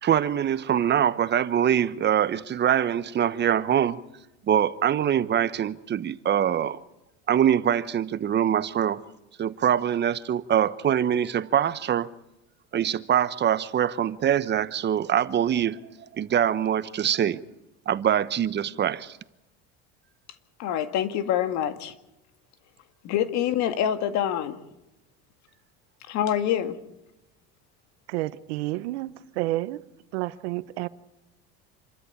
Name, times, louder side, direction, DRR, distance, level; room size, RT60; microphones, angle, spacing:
voice 1, 0.0-4.0 4.5-6.8 7.3-9.0 9.4-12.1 12.7-15.8 16.2-17.4 17.9-19.1, right 9 dB, 35° right, 1.1 m, -24 dB
voice 2, 20.6-21.9 23.0-24.6 26.1-26.8, left 10 dB, 60° left, 2.1 m, -26 dB
voice 3, 28.1-29.8 30.1-30.9, right 18 dB, 85° right, 1.1 m, -30 dB
27.5 x 13.0 x 8.5 m
supercardioid pair, 110°, 32 cm